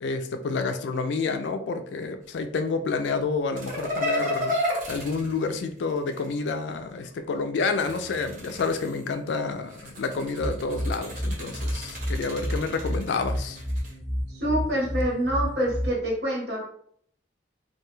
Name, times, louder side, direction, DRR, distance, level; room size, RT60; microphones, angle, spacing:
voice 1, 0.0-13.6, left 4 dB, 80° left, 8 dB, 0.3 m, -29 dB
sound 1, 3.6-6.3 7.6-9.1 9.7-13.9, left 1 dB, 50° right, 0.7 m, -33 dB
sound 2, 10.4-15.9, equal, 10° right, 0.4 m, -31 dB
voice 2, 14.3-16.7, equal, 70° right, -2 dB, 0.9 m, -26 dB
2.2 x 2.2 x 3.0 m, 0.62 s
head